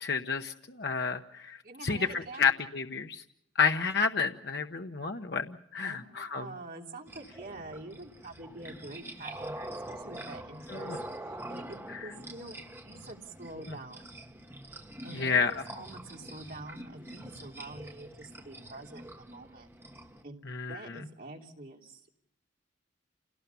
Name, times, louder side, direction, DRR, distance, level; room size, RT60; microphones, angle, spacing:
voice 1, 0.0-1.6 1.8-3.2 3.6-6.5 10.7-11.0 11.9-12.0 15.1-15.6 20.5-20.8, left 5 dB, 60° left, 5 dB, 1.0 m, -30 dB
voice 2, 1.6-2.5 5.8-10.9 11.2-14.0 15.0-19.7 20.2-20.4 20.7-22.1, right 2 dB, 50° right, 0 dB, 3.3 m, -46 dB
sound 1, 7.1-20.2, right 1 dB, 15° right, 1.4 m, -45 dB
28.0 x 18.5 x 7.0 m, 0.78 s
head